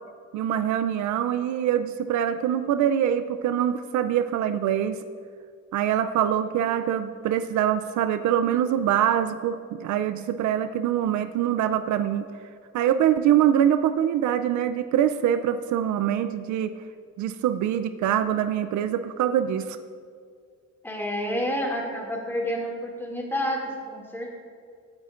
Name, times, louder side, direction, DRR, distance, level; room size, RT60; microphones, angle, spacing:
voice 1, 0.3-5.0 5.7-12.2 12.7-16.7 17.2-19.8, right 10 dB, 75° right, 12 dB, 0.5 m, -24 dB
voice 2, 20.8-24.3, equal, 5° left, -1 dB, 2.2 m, -29 dB
14.0 x 9.6 x 2.5 m, 2.2 s
cardioid pair, 90°, 30 cm